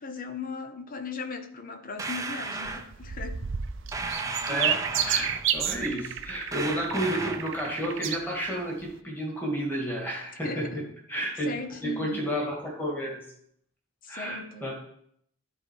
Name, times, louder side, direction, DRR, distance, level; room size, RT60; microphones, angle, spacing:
voice 1, 0.0-3.5 10.4-10.8 11.4-12.2 14.0-14.7, left 4 dB, 45° left, 0.9 m, -38 dB
sound 1, 2.0-2.9 3.9-5.5 6.5-7.6, right 3 dB, 15° right, 0.6 m, -34 dB
sound 2, 2.6-8.2 8.8-8.9, right 9 dB, 65° right, 0.6 m, -31 dB
voice 2, 4.5-11.5 11.8-13.2 14.1-14.7, right 1 dB, 10° left, 2.3 m, -31 dB
12.0 x 4.3 x 4.7 m
head